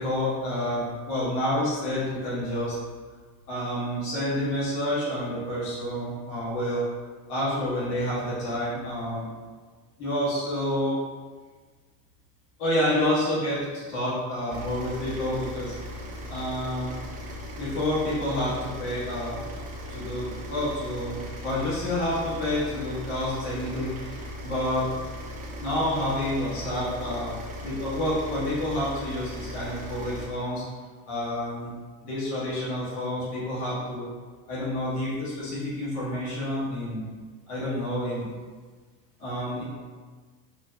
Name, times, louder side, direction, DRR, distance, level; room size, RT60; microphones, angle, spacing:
voice 1, 0.0-2.8 3.5-6.8 7.3-9.3 10.0-11.0 12.6-15.7 16.3-16.9 17.6-19.4 19.9-21.2 21.4-24.1 24.4-24.9 25.6-27.4 27.6-30.6 31.1-31.7 32.0-34.1 34.5-37.1 37.5-38.3 39.2-39.6, left 1 dB, 65° left, -9 dB, 1.5 m, -28 dB
sound 1, 14.5-30.3, equal, 20° right, 0.4 m, -38 dB
3.9 x 2.6 x 2.2 m, 1.4 s
hypercardioid pair, 80°, 50 cm